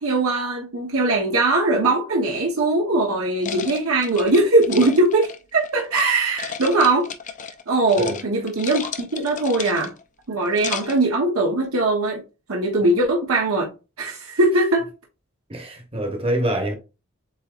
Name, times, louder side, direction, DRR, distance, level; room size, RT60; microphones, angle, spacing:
voice 1, 0.0-7.1 7.7-9.9 10.3-12.2 12.5-13.7 14.0-14.9, right 2 dB, 85° right, 0.9 m, -20 dB
sound 1, 3.4-6.0 6.4-7.6 7.9-8.2 8.5-10.0 10.4-11.1, left 7 dB, 35° left, 0.5 m, -33 dB
voice 2, 15.5-16.7, right 1 dB, 25° right, 1.0 m, -25 dB
7.3 x 2.9 x 2.4 m
head